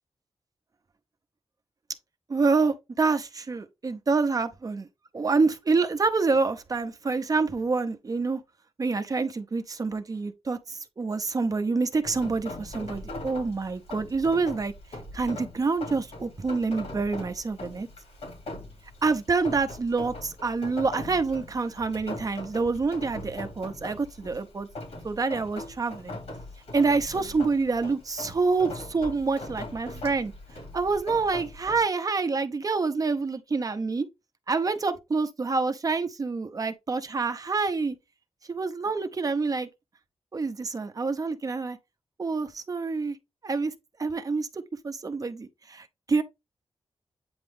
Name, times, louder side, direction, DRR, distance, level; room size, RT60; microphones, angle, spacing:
voice 1, 2.3-4.9 5.1-8.4 8.8-14.7 15.1-17.9 19.0-24.7 25.0-26.2 26.7-30.3 30.7-34.1 34.5-37.9 38.5-39.7 40.3-41.8 42.2-43.2 43.4-43.7 44.0-46.2, right 4 dB, 35° right, 0.7 m, -27 dB
Rain, 12.0-31.8, left 2 dB, 90° left, 2.8 m, -41 dB
8.8 x 3.0 x 3.5 m
wide cardioid pair, 150°, 10 cm